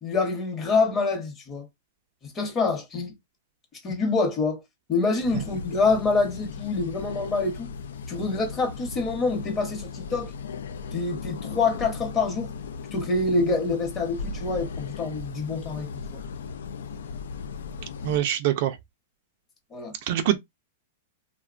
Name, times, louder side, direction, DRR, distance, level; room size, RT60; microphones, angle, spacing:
voice 1, 0.0-1.7 2.2-3.1 3.7-4.6 4.9-7.7 8.1-10.3 10.9-12.5 12.9-16.2 19.7-19.9, left 3 dB, 20° left, 0.9 m, -26 dB
sound 1, 5.2-18.2, left 5 dB, 85° left, 0.4 m, -37 dB
voice 2, 18.0-18.8 20.1-20.4, right 12 dB, 55° right, 0.4 m, -24 dB
2.9 x 2.1 x 2.4 m
supercardioid pair, 145°, 0 cm